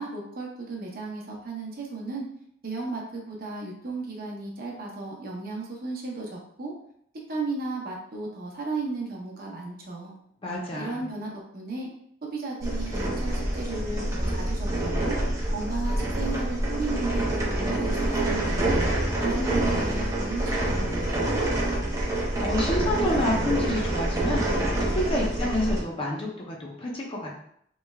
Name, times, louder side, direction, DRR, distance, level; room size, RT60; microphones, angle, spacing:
voice 1, 0.0-2.3 2.6-6.7 7.3-10.2 10.8-11.9 12.2-15.2 15.5-18.8 19.2-21.4, right 3 dB, 50° right, -1 dB, 0.7 m, -35 dB
voice 2, 10.4-11.1 22.1-27.4, left 1 dB, 30° left, -2 dB, 0.6 m, -29 dB
sound 1, 12.6-25.8, right 1 dB, 15° right, 0.6 m, -26 dB
3.3 x 3.1 x 2.3 m, 0.68 s
head